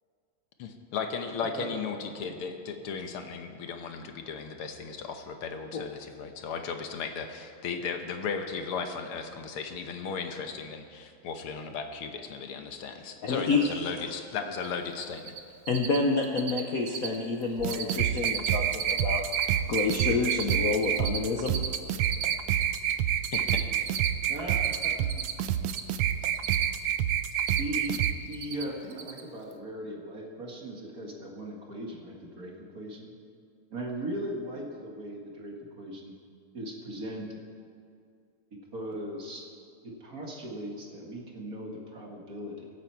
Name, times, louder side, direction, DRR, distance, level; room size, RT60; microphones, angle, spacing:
voice 1, 0.6-15.4 23.3-23.7, left 5 dB, 75° left, 6 dB, 1.9 m, -36 dB
voice 2, 13.2-13.7 15.7-19.2 19.7-21.6, left 4 dB, 55° left, 1 dB, 1.0 m, -28 dB
Cricket, 14.5-14.7 14.9-15.4 15.7-16.0 16.2-16.6 16.9-17.2 17.4-17.9 18.2-19.5 19.7-22.9 23.2-25.8 26.1-26.9 27.2-28.1 28.3-28.6 28.9-29.2, right 8 dB, 65° right, 1.6 m, -34 dB
sound 1, 17.6-28.1, right 10 dB, 85° right, 1.5 m, -28 dB
voice 3, 24.3-24.9 25.3-25.4 27.6-33.1 33.7-36.2 36.5-37.4 38.7-39.5 39.8-42.7, right 1 dB, 45° right, 0 dB, 2.0 m, -38 dB
24.0 x 8.9 x 4.6 m, 2.3 s
omnidirectional pair, 2.4 m